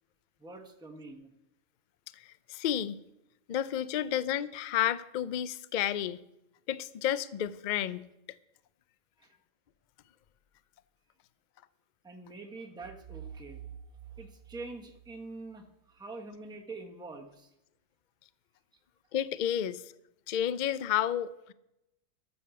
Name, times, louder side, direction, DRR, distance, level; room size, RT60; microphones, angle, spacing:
voice 1, 0.4-1.3 9.2-9.3 12.0-13.6 14.2-17.5, right 3 dB, 5° right, 2 dB, 1.0 m, -45 dB
voice 2, 2.1-3.0 3.5-6.2 6.7-8.1 19.1-19.9 20.3-21.5, left 10 dB, 85° left, 16 dB, 0.4 m, -31 dB
sound 1, 12.8-15.6, right 8 dB, 60° right, 0.8 m, -48 dB
13.0 x 6.5 x 7.0 m, 0.87 s
omnidirectional pair, 1.5 m